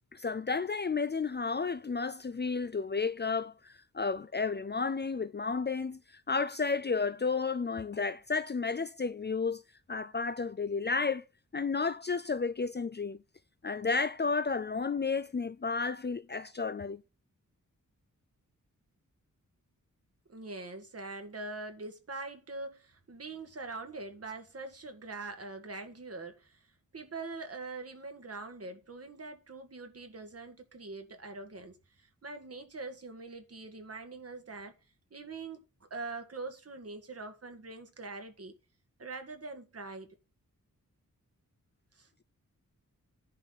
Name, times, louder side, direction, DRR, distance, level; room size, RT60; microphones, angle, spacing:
voice 1, 0.1-6.0 6.3-9.6 9.9-11.2 11.5-13.2 13.6-17.0, left 4 dB, 35° left, 0.5 m, -32 dB
voice 2, 20.3-26.7 26.9-34.7 35.1-35.6 35.9-38.6 39.0-40.1 41.9-42.1, right 3 dB, 45° right, 1.9 m, -43 dB
10.5 x 4.2 x 6.6 m
wide cardioid pair, 140°, 33 cm